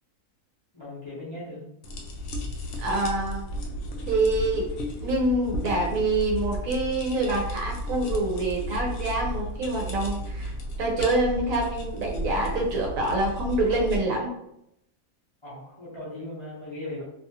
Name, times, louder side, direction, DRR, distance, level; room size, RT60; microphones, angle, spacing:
voice 1, 0.7-1.7 15.4-17.0, left 1 dB, 30° left, -8 dB, 0.6 m, -38 dB
sound 1, 1.8-14.0, equal, 70° left, 0.7 m, -34 dB
voice 2, 2.8-3.4 4.1-4.7 5.0-10.5 10.8-14.3, right 2 dB, 70° right, 0 dB, 1.0 m, -26 dB
2.7 x 2.4 x 2.7 m, 0.80 s
omnidirectional pair, 1.6 m